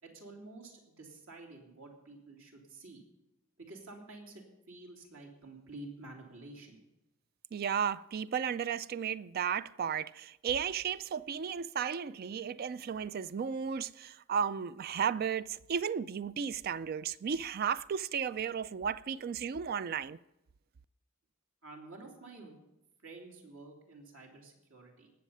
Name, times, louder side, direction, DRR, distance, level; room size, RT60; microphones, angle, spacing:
voice 1, 0.0-3.0 3.6-6.8 21.6-22.6 23.0-25.1, right 2 dB, 75° right, 2.8 m, -50 dB
voice 2, 7.5-20.2, right 7 dB, 45° right, 0.3 m, -34 dB
19.0 x 7.2 x 5.5 m
head